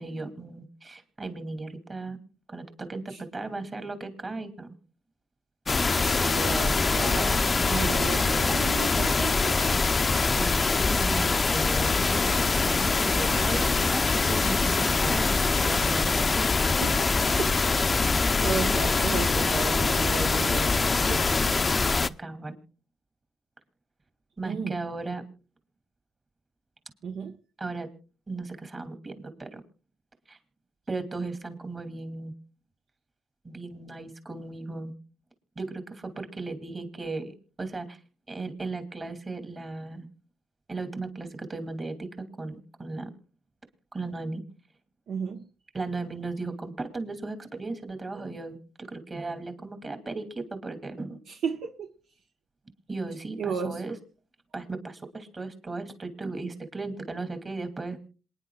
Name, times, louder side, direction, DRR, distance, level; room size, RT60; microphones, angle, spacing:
voice 1, 0.0-2.2 2.5-4.8 10.4-16.5 22.2-22.6 24.4-25.2 27.6-27.9 28.3-29.6 30.3-30.4 30.9-32.3 33.4-34.9 35.6-37.3 37.6-38.0 38.3-40.1 40.7-43.1 43.9-44.4 45.7-51.2 52.9-53.9 54.5-58.0, right 3 dB, 30° right, 2.6 m, -36 dB
sound 1, 5.7-22.1, left 4 dB, 30° left, 0.6 m, -24 dB
voice 2, 6.0-9.9 16.8-18.1 18.4-20.7 21.0-21.3 24.5-24.8 27.0-27.4 45.1-45.4 51.3-51.9 53.4-53.8, right 5 dB, 70° right, 1.1 m, -34 dB
27.0 x 10.0 x 2.3 m
cardioid pair, 90°, 0 cm